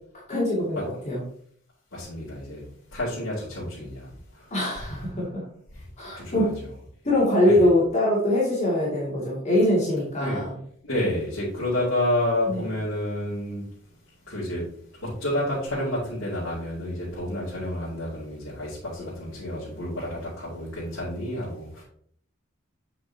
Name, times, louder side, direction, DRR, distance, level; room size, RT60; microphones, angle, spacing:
voice 1, 0.3-1.2 4.5-5.4 6.0-6.6 7.0-10.6 12.5-12.7 19.0-19.1, left 1 dB, 35° left, -6 dB, 2.6 m, -23 dB
voice 2, 1.9-2.6 2.9-4.5 5.7-5.8 6.1-6.5 7.4-7.7 10.2-10.4 10.8-13.6 14.3-14.6 15.2-21.8, left 1 dB, 80° left, -9 dB, 2.6 m, -29 dB
7.6 x 5.7 x 2.9 m, 0.62 s
head